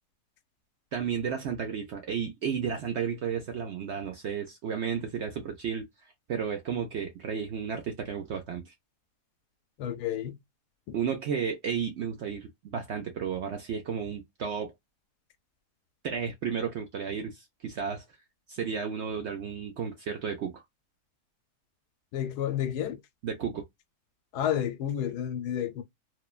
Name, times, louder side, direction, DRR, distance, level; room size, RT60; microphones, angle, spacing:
voice 1, 0.9-5.9 6.3-8.7 10.9-14.7 16.0-18.0 18.5-20.6 23.2-23.6, right 7 dB, 65° right, 0.7 m, -33 dB
voice 2, 9.8-10.3 22.1-23.0 24.3-25.8, left 10 dB, 85° left, 1.1 m, -30 dB
3.0 x 2.2 x 2.3 m
omnidirectional pair, 1.7 m